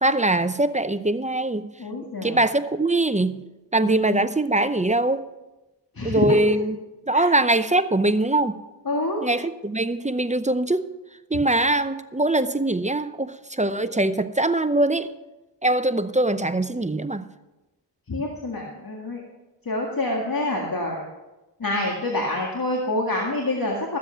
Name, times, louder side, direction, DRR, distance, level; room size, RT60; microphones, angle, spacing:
voice 1, 0.0-1.7 2.2-3.4 3.7-5.3 6.0-6.8 7.1-8.6 9.2-10.9 11.3-15.1 15.6-17.3, right 2 dB, 15° right, 12 dB, 0.6 m, -22 dB
voice 2, 1.8-2.4 3.8-4.2 6.0-6.4 7.1-7.3 8.9-9.2 18.1-19.2 19.7-21.0 21.6-24.0, left 2 dB, 50° left, -1 dB, 2.0 m, -26 dB
14.0 x 7.6 x 5.7 m, 1.0 s
cardioid pair, 45°, 44 cm